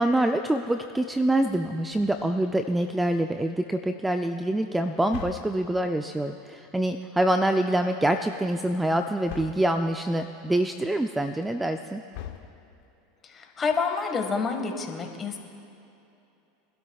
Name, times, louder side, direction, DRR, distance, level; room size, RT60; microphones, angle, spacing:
voice 1, 0.0-12.0, right 1 dB, 10° right, 7 dB, 0.5 m, -25 dB
sound 1, 1.9-2.6 5.1-6.0 9.3-9.9 12.1-13.0, left 11 dB, 65° left, 0.9 m, -42 dB
voice 2, 13.2-15.4, left 5 dB, 25° left, 4 dB, 1.7 m, -28 dB
24.5 x 12.5 x 2.4 m, 2.7 s
hypercardioid pair, 105°, 0 cm